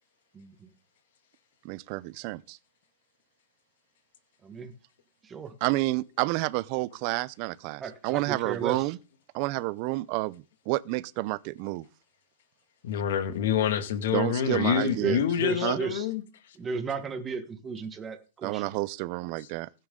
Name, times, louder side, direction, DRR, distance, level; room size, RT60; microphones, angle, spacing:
voice 1, 0.3-0.7 4.4-4.7 5.2-5.5 7.8-8.8 15.0-16.1 16.6-18.7, right 5 dB, 15° right, 1.3 m, -34 dB
voice 2, 1.6-2.6 5.6-9.0 9.3-11.9 14.1-15.2 15.6-15.8 18.4-19.7, right 21 dB, 35° right, 0.5 m, -30 dB
voice 3, 12.8-16.2, left 9 dB, 55° left, 2.0 m, -27 dB
15.5 x 9.6 x 3.8 m
hypercardioid pair, 165°, 0 cm